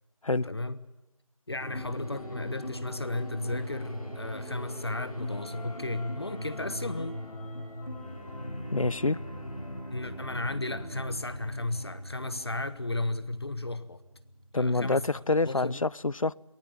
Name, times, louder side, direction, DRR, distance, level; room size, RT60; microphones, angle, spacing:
voice 1, 0.4-0.8 1.5-7.2 9.9-14.0 14.5-15.1 15.4-15.8, left 2 dB, 45° left, 1.1 m, -34 dB
sound 1, 1.6-15.2, equal, 85° left, 7.7 m, -40 dB
voice 2, 8.7-9.2 14.5-16.3, left 3 dB, 65° left, 0.7 m, -26 dB
23.5 x 18.0 x 8.7 m
figure-of-eight pair, 170°, 18 cm